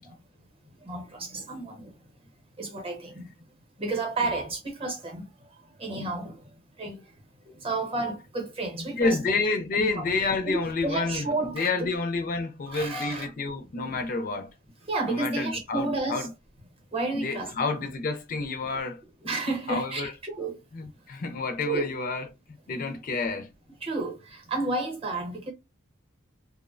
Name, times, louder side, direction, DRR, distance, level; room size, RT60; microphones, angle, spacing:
voice 1, 0.8-1.9 2.6-3.3 3.8-5.2 5.8-6.4 6.8-7.0 7.6-9.2 9.7-10.0 10.5-11.9 12.7-13.3 14.9-16.3 16.9-17.5 19.2-20.6 21.7-21.9 23.8-25.5, right 2 dB, 25° right, 0.7 m, -31 dB
voice 2, 8.9-14.5 15.1-16.3 17.1-19.0 19.7-20.1 20.7-22.3 22.7-23.5, left 3 dB, 40° left, 0.3 m, -29 dB
2.5 x 2.0 x 2.4 m
head